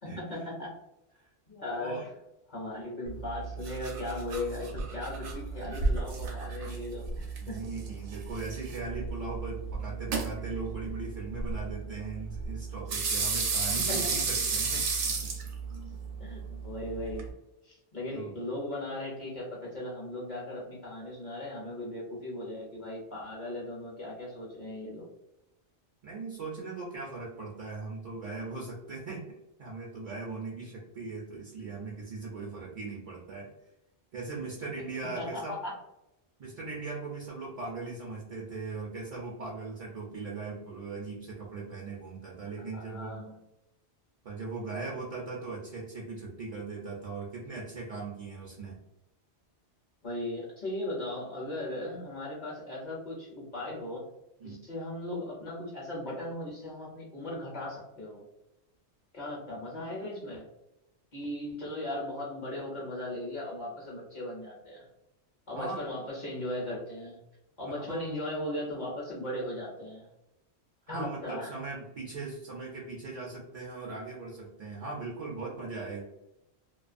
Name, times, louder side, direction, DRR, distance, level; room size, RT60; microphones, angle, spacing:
voice 1, 0.0-0.7 1.5-2.1 2.5-7.6 13.9-14.1 16.2-17.3 17.6-25.1 35.2-35.7 42.7-43.4 50.0-54.0 54.4-58.2 59.1-60.5 61.1-64.9 65.5-67.2 67.6-70.1 70.9-71.6, left 1 dB, 50° left, -3 dB, 0.7 m, -37 dB
voice 2, 1.7-2.1 7.4-14.9 15.2-15.3 18.1-18.4 26.0-29.3 29.6-33.5 34.1-35.5 36.4-43.3 44.2-48.8 54.4-54.6 65.6-65.8 67.6-68.2 70.9-76.0, right 3 dB, 55° right, -3 dB, 0.5 m, -39 dB
sound 1, 3.1-17.3, right 4 dB, 85° right, 0.9 m, -33 dB
2.3 x 2.3 x 2.4 m, 0.90 s
omnidirectional pair, 1.1 m